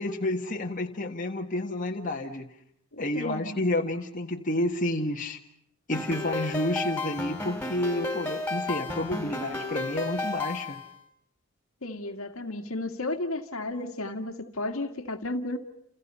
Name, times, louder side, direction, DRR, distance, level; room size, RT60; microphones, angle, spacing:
voice 1, 0.0-2.5 3.0-5.4 5.9-10.8, left 1 dB, 35° left, 1.7 m, -30 dB
voice 2, 2.9-3.6 11.8-15.6, left 2 dB, 65° left, 2.1 m, -33 dB
sound 1, 5.9-10.9, left 2 dB, 5° left, 4.5 m, -33 dB
30.0 x 29.0 x 5.6 m
head